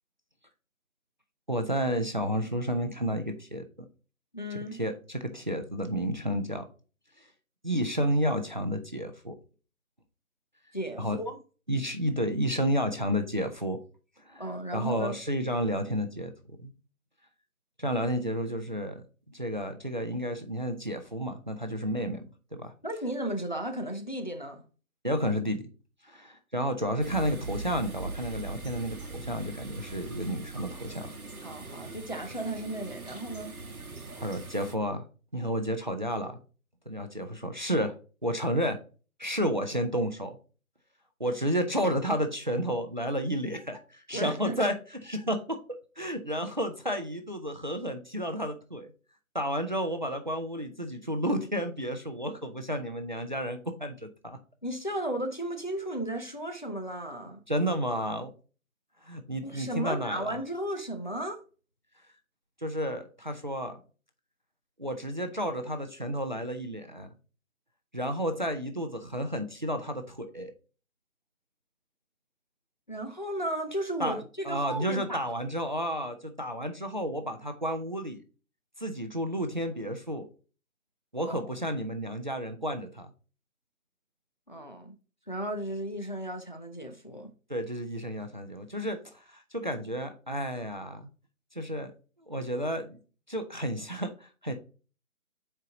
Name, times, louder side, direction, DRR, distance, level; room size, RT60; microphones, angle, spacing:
voice 1, 1.5-3.6 4.7-6.6 7.2-7.3 7.6-9.3 11.0-11.2 11.7-13.8 14.2-16.3 16.6-16.7 17.8-22.2 22.5-22.7 25.0-25.6 26.0-31.1 34.2-35.0 35.3-36.4 36.9-38.0 38.2-38.8 39.2-40.4 41.2-44.7 45.0-48.9 49.3-54.4 57.2-58.3 59.0-60.4 62.6-63.8 64.8-67.1 67.9-70.5 74.0-78.2 78.8-80.3 81.1-83.1 87.5-91.1 91.5-91.9 92.3-93.0 93.3-94.5, equal, 35° right, 0.5 m, -31 dB
voice 2, 4.3-4.8 10.7-11.4 14.4-15.2 22.8-24.6 31.4-33.6 44.1-44.6 54.6-57.4 59.4-61.4 72.9-75.2 81.3-81.4 84.5-85.0 85.3-87.3, right 1 dB, 35° left, 0.5 m, -34 dB
sound 1, 27.0-34.8, right 3 dB, 85° right, 1.1 m, -41 dB
6.0 x 4.6 x 3.7 m
figure-of-eight pair, 155°, 43 cm